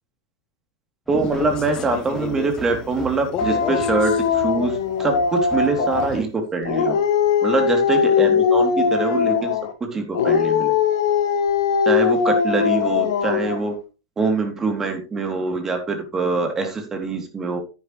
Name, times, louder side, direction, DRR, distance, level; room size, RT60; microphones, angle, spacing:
Male speech man speaking, 1.1-4.3 5.6-6.3, left 11 dB, 35° left, 0.8 m, -33 dB
sound 1, 1.1-6.2, right 3 dB, ahead, 4.8 m, -38 dB
voice 1, 1.1-7.0 7.4-9.5 9.9-10.7 11.8-13.7 14.2-17.6, right 3 dB, 20° right, 4 dB, 3.1 m, -24 dB
Dog, 3.4-6.2 6.6-9.7 10.1-13.7, left 6 dB, 75° left, 2.0 m, -20 dB
11.0 x 9.5 x 3.3 m, 0.31 s
hypercardioid pair, 105°, 2 cm